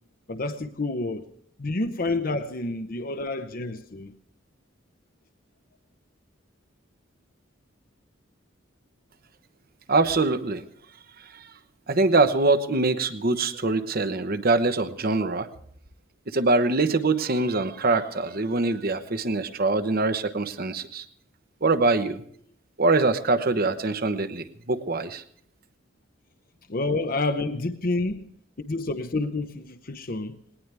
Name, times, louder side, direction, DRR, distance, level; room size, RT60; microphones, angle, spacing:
voice 1, 0.3-1.3 1.6-4.1 26.7-28.3 28.6-30.4, left 2 dB, 45° left, 0.8 m, -29 dB
voice 2, 9.9-10.6 11.3-11.5 11.9-15.5 16.3-21.0 21.6-22.2 22.8-25.2, right 3 dB, 50° right, 1.0 m, -23 dB
19.5 x 19.0 x 3.4 m
head